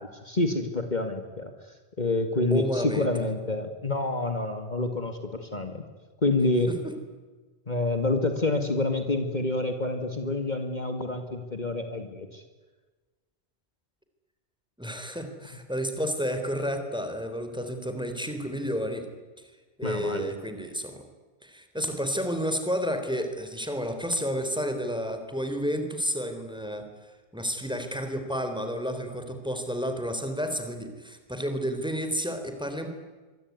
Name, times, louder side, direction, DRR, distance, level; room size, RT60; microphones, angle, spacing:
voice 1, 0.0-1.5 2.0-5.8 6.2-6.7 7.7-12.4 19.8-20.3, left 2 dB, 45° left, 6 dB, 2.3 m, -28 dB
voice 2, 2.5-3.1 6.7-6.9 14.8-19.1 19.8-21.0 21.4-26.9 27.3-32.9, equal, 5° right, 7 dB, 3.9 m, -31 dB
25.5 x 23.5 x 9.6 m, 1.3 s
omnidirectional pair, 1.1 m